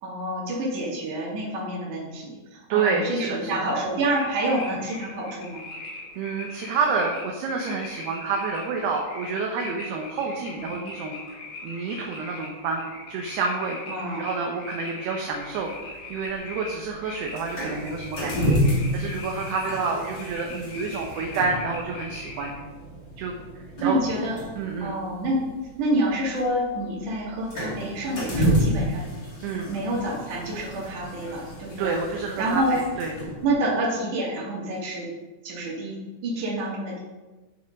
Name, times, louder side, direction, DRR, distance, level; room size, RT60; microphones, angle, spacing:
voice 1, 0.0-5.7 10.5-10.6 13.9-14.3 19.7-19.9 23.8-24.4 24.8-25.5 25.8-29.1 29.6-32.0 32.4-32.8 33.4-35.1 35.4-37.0, right 1 dB, 50° right, -4 dB, 3.6 m, -28 dB
voice 2, 2.7-3.7 6.2-11.2 11.6-12.8 13.1-13.8 14.2-15.7 16.1-18.6 18.9-22.5 23.2-23.4 23.8-24.0 24.6-25.0 29.4-29.7 31.8-33.1, right 4 dB, 75° right, 1 dB, 2.8 m, -28 dB
sound 1, 4.1-22.6, left 3 dB, 85° left, 5.0 m, -40 dB
sound 2, 15.2-33.5, equal, 35° left, 1.8 m, -31 dB
9.4 x 7.1 x 5.3 m, 1.2 s
omnidirectional pair, 5.2 m